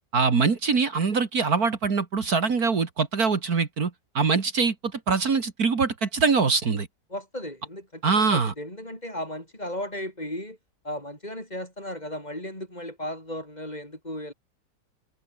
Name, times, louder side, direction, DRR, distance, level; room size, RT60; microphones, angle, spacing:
voice 1, 0.1-6.9 8.0-8.5, right 5 dB, 60° right, 2.6 m, -23 dB
voice 2, 7.1-10.6 10.8-14.3, left 1 dB, 25° left, 7.4 m, -35 dB
omnidirectional pair, 1.8 m